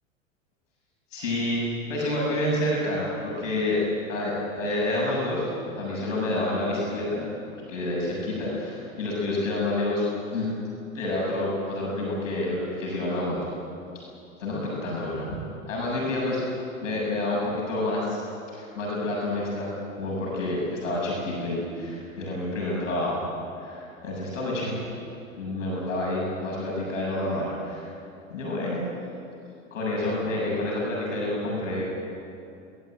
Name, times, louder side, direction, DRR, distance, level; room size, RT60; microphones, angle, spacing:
voice 1, 1.1-3.8 4.1-5.5 5.8-7.3 7.7-10.0 10.3-10.5 10.9-13.4 14.4-15.3 15.7-16.4 16.8-18.2 18.5-19.7 20.0-23.2 23.6-24.8 25.3-27.9 28.3-28.8 29.7-31.8, left 1 dB, 65° left, -4 dB, 7.8 m, -28 dB
22.0 x 19.5 x 9.1 m, 2.6 s
figure-of-eight pair, 85°, 40 cm